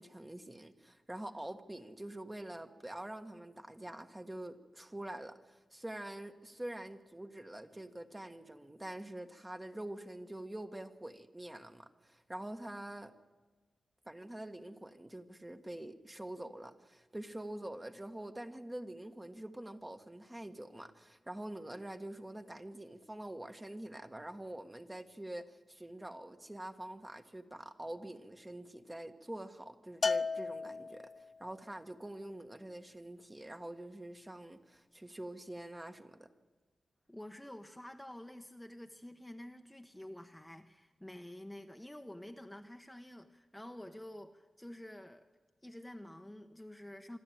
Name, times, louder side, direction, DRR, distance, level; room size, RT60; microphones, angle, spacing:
voice 1, 0.0-13.1 14.0-36.3, right 1 dB, 15° right, 7 dB, 1.6 m, -46 dB
Bell, 30.0-31.4, left 4 dB, 55° left, 0.6 m, -34 dB
voice 2, 37.1-45.3 45.6-47.2, left 1 dB, 10° left, 6 dB, 1.1 m, -49 dB
25.5 x 12.0 x 9.2 m, 1.3 s
cardioid pair, 70°, 0 cm